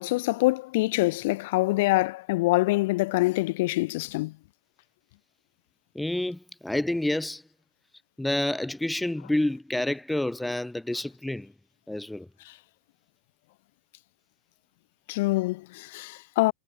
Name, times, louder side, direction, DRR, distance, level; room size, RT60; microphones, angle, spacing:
voice 1, 0.0-4.3 15.1-16.5, left 21 dB, 50° left, 2.9 m, -25 dB
voice 2, 6.0-7.4 8.2-11.5 11.9-12.3, left 1 dB, 5° left, 2.0 m, -28 dB
figure-of-eight pair, 90°, 0 cm